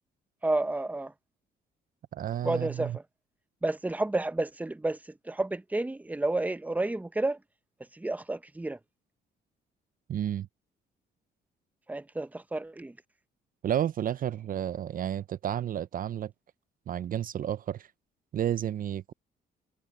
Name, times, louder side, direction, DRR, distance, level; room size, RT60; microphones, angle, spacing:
voice 1, 0.4-1.1 2.4-3.0 3.6-5.0 5.3-7.4 7.9-8.8 11.9-12.9, right 2 dB, 10° right, 0.8 m, -30 dB
voice 2, 2.1-3.0 10.1-10.5 13.6-16.3 16.9-17.9 18.3-19.1, right 10 dB, 50° right, 0.5 m, -31 dB
cardioid pair, 85°, 18 cm